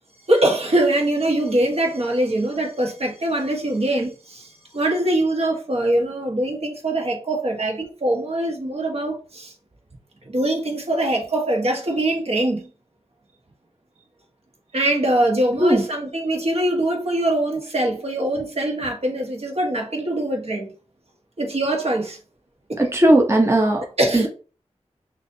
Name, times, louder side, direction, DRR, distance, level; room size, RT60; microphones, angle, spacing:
voice 1, 0.3-9.5 10.2-12.7 14.7-20.7 21.4-22.2 22.7-22.8 24.0-24.3, right 1 dB, 55° right, 1.4 m, -23 dB
voice 2, 22.8-23.9 24.1-24.3, right 1 dB, 20° right, 0.8 m, -17 dB
6.1 x 2.6 x 2.7 m
cardioid pair, 55°, 12 cm